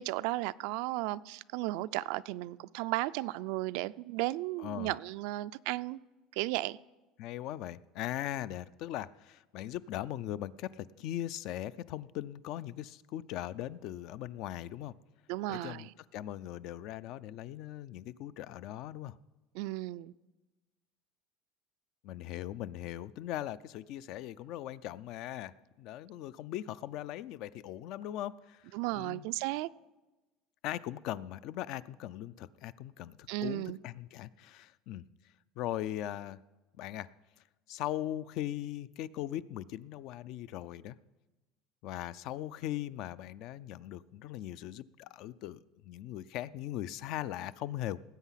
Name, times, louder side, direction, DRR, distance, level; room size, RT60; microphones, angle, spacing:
voice 1, 0.0-6.0 6.3-6.8 15.3-15.9 19.5-20.1 28.7-29.7 33.3-33.8, right 18 dB, 70° right, 0.3 m, -34 dB
voice 2, 4.6-5.0 7.2-14.9 15.5-19.2 22.0-29.2 30.6-35.0 35.6-36.4 36.8-37.1 37.7-41.0 41.8-48.0, left 13 dB, 55° left, 0.4 m, -39 dB
18.5 x 8.2 x 5.7 m
cardioid pair, 150°, 0 cm